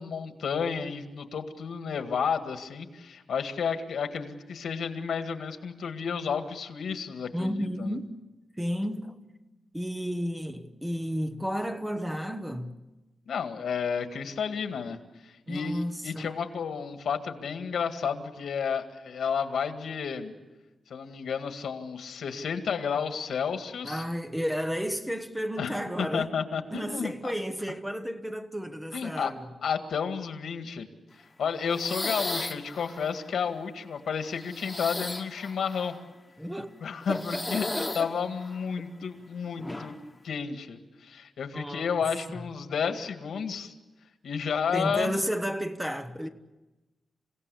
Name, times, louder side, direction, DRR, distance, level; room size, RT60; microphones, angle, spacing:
voice 1, 0.0-8.0 13.3-20.3 20.9-24.0 25.6-27.3 28.9-29.3 29.6-30.9 31.1-35.9 36.8-37.7 37.9-40.0 40.2-43.7 44.2-45.2, left 6 dB, 80° left, 2.0 m, -31 dB
voice 2, 7.3-8.1 8.6-9.2 9.7-12.7 15.5-16.3 23.8-26.3 26.7-29.5 36.4-36.8 37.1-38.1 41.5-41.9 44.7-46.3, equal, 5° right, 0.9 m, -32 dB
sound 1, 31.6-33.3 34.3-36.0 37.1-38.7 39.6-40.0, left 2 dB, 15° left, 1.5 m, -36 dB
28.5 x 17.0 x 8.5 m
wide cardioid pair, 165°, 0 cm